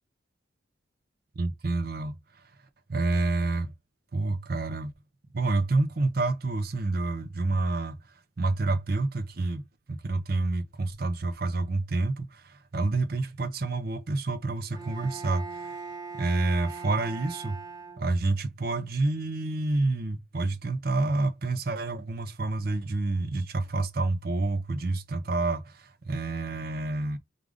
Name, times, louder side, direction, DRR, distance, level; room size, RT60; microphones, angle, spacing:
voice 1, 1.4-2.5 2.9-3.7 4.1-4.9 5.3-8.0 8.4-9.6 9.9-15.8 16.2-17.6 18.0-27.2, right 2 dB, 50° right, 0.5 m, -28 dB
Bowed string instrument, 14.7-18.5, right 4 dB, 20° right, 1.1 m, -40 dB
4.8 x 2.5 x 3.5 m
head